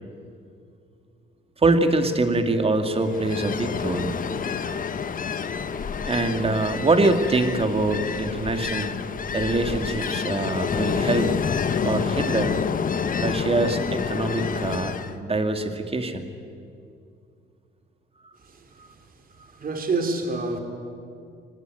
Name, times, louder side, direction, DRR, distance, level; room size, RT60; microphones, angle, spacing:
voice 1, 1.6-4.1 6.0-9.0 9.3-11.3 11.8-12.6 13.2-16.3, right 2 dB, 30° right, 2.3 m, -24 dB
Ocean, 3.0-15.2, left 6 dB, 45° left, 1.0 m, -28 dB
voice 2, 18.4-19.0 19.5-20.6, right 3 dB, 45° right, 3.6 m, -28 dB
25.0 x 19.0 x 9.1 m
cardioid pair, 90°, 20 cm